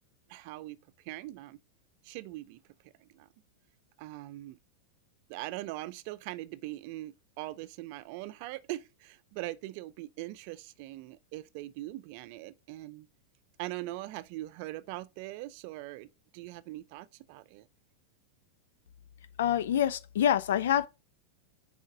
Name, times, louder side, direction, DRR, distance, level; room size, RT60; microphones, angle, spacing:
voice 1, 0.3-0.8 1.0-1.6 2.0-3.3 4.0-4.6 5.3-13.1 13.6-17.7, right 17 dB, 55° right, 0.5 m, -41 dB
voice 2, 19.4-20.9, left 10 dB, 80° left, 0.6 m, -26 dB
4.9 x 3.9 x 4.8 m
hypercardioid pair, 115°, 0 cm